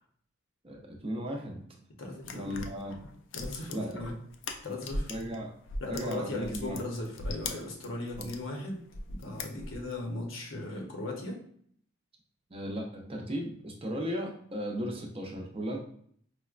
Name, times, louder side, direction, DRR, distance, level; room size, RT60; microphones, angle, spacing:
voice 1, 0.6-1.6 2.3-2.9 3.7-4.1 5.1-5.5 5.9-6.8 8.2-8.3 12.5-15.8, equal, 30° right, 0 dB, 0.5 m, -36 dB
voice 2, 2.0-2.6 3.3-4.1 4.6-5.1 5.8-8.8 9.1-11.4, left 2 dB, 80° left, 0 dB, 0.8 m, -37 dB
sound 1, 2.2-5.4 5.6-8.4 8.9-10.0, left 2 dB, 65° left, 0.4 m, -39 dB
4.7 x 2.1 x 2.4 m, 0.62 s
head